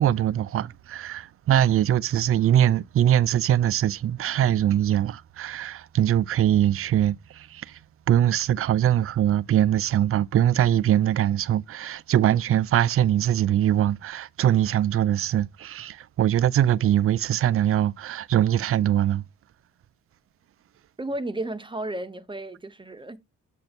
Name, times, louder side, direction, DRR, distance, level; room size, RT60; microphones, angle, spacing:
voice 1, 0.0-7.8 8.1-19.2, right 11 dB, 50° right, 0.4 m, -22 dB
voice 2, 21.0-23.2, right 1 dB, 15° right, 0.9 m, -33 dB
7.7 x 2.6 x 5.8 m
cardioid pair, 90°, 30 cm